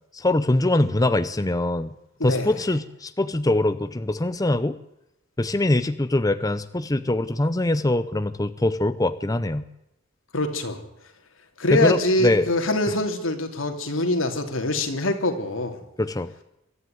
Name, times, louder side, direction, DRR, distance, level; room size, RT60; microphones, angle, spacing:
voice 1, 0.1-1.9 2.2-4.8 5.4-9.6 11.7-12.5 16.0-16.3, left 1 dB, 20° left, 11 dB, 0.7 m, -23 dB
voice 2, 2.2-2.6 10.3-10.8 11.6-15.8, left 1 dB, 85° left, 5 dB, 3.1 m, -24 dB
23.0 x 13.0 x 9.4 m, 0.87 s
head